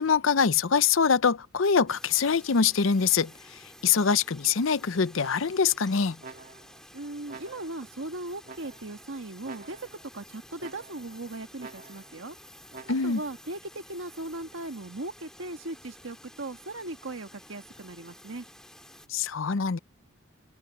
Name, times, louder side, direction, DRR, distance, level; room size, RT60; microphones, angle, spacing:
voice 1, 0.0-3.3 3.8-6.2 12.9-13.2 19.1-19.8, left 6 dB, 70° left, 0.7 m, -24 dB
sound 1, 1.9-19.1, left 1 dB, 5° left, 2.5 m, -52 dB
sound 2, 5.2-5.7 6.2-6.8 7.3-7.9 8.4-9.0 9.4-10.1 10.6-11.2 11.6-12.2 12.7-13.3, right 3 dB, 45° right, 2.7 m, -48 dB
voice 2, 6.9-9.9 10.1-12.4 13.0-18.4, right 2 dB, 70° right, 1.5 m, -38 dB
head